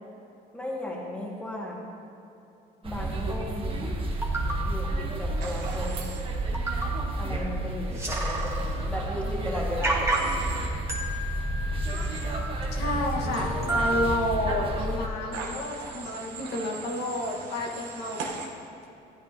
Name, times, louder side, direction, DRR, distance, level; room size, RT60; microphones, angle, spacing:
voice 1, 0.5-1.8 2.8-3.8 4.6-6.2 7.2-10.3, left 1 dB, 5° left, -4 dB, 1.9 m, -35 dB
sound 1, 2.8-15.1, right 1 dB, 30° right, 1.2 m, -31 dB
sound 2, 3.7-3.8 4.2-4.6 5.6-5.7 6.0-6.2 6.5-7.0 7.4-7.5 7.8-8.8 9.3-9.4 9.8-10.5 10.9-12.4 12.9-13.0 13.3-14.7 15.3-15.4, right 2 dB, 15° right, 1.6 m, -31 dB
Human voice / Train, 5.4-6.2 10.1-10.7 11.8-12.2 15.3-18.5, right 5 dB, 90° right, 1.1 m, -40 dB
voice 2, 12.7-18.3, left 1 dB, 75° left, -2 dB, 1.5 m, -30 dB
13.5 x 9.0 x 2.8 m, 2.8 s
cardioid pair, 110°, 17 cm